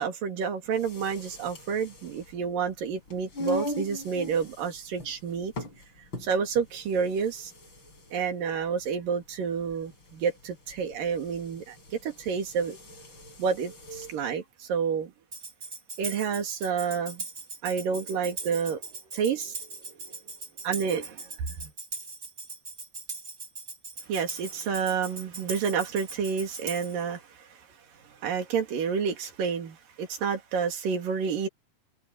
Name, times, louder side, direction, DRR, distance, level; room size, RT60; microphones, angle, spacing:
voice 1, 0.0-5.5 6.2-7.5 8.1-12.8 13.4-15.1 16.0-17.2 17.6-18.8 19.1-19.6 20.1-20.2 20.6-21.3 21.6-21.7 24.1-27.2 28.2-31.5, right 6 dB, 80° right, 4.2 m, -29 dB
sound 1, 0.7-14.2, left 1 dB, 35° left, 5.6 m, -41 dB
Tambourine, 15.3-27.0, right 3 dB, 25° right, 3.8 m, -40 dB
omnidirectional pair, 3.9 m